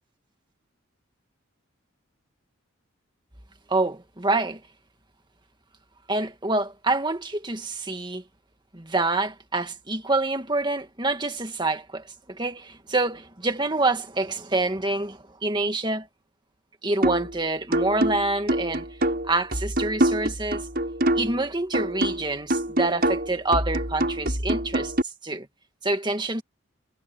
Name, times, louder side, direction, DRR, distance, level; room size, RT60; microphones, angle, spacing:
voice 1, 3.7-4.6 6.1-8.2 8.7-16.1 16.8-18.9 19.2-20.7 21.2-24.9 25.2-25.5 25.8-26.4, right 2 dB, 20° right, 2.0 m, -26 dB
sound 1, 17.0-17.3 17.7-21.4 21.7-25.0, right 1 dB, 45° right, 7.8 m, -25 dB
head